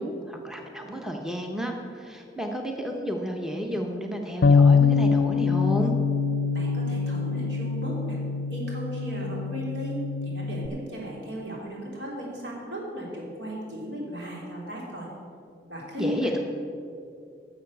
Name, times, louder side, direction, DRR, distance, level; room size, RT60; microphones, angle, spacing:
voice 1, 0.0-5.9 16.0-16.4, equal, 5° right, 2 dB, 0.8 m, -31 dB
Bass guitar, 4.4-10.7, left 5 dB, 65° left, 0.5 m, -24 dB
voice 2, 6.5-8.2 8.5-15.1 15.7-16.3, equal, 85° right, -3 dB, 3.3 m, -36 dB
11.5 x 7.0 x 6.6 m, 2.4 s
head